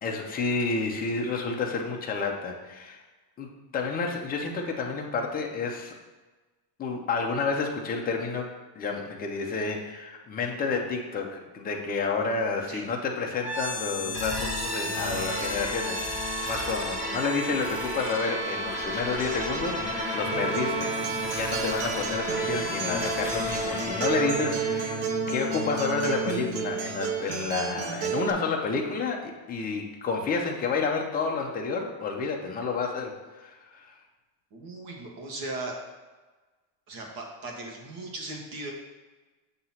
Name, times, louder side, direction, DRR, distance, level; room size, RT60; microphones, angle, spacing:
voice 1, 0.0-3.0 3.4-5.9 6.8-8.5 8.8-25.0 25.3-33.9, left 4 dB, 20° left, 1 dB, 0.5 m, -30 dB
sound 1, 13.4-27.3, left 1 dB, 15° right, 1.6 m, -32 dB
Acoustic guitar, 20.3-28.3, right 11 dB, 85° right, 0.7 m, -32 dB
voice 2, 34.5-35.7 36.9-38.7, right 2 dB, 45° right, 0 dB, 1.3 m, -37 dB
7.7 x 2.9 x 5.6 m, 1.2 s
cardioid pair, 175°, 46 cm